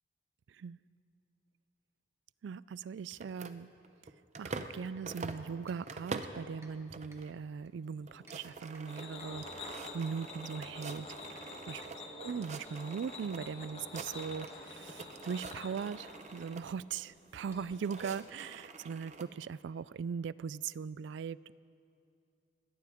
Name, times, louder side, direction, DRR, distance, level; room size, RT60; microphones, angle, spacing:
voice 1, 0.5-0.8 2.4-3.7 4.4-11.1 11.7-11.8 12.2-21.5, right 6 dB, 75° right, 19 dB, 0.3 m, -40 dB
sound 1, 3.1-4.8 5.0-6.4 6.9-7.3 7.7-7.8 8.0-12.0 12.3-13.4 13.7-14.6 14.9-16.6 17.4-19.3, right 3 dB, 40° right, 0.6 m, -46 dB
sound 2, 5.6-18.6, right 2 dB, 15° right, 1.2 m, -66 dB
sound 3, 8.0-18.0, left 2 dB, 35° left, 1.3 m, -48 dB
20.5 x 17.0 x 3.6 m, 2.5 s
head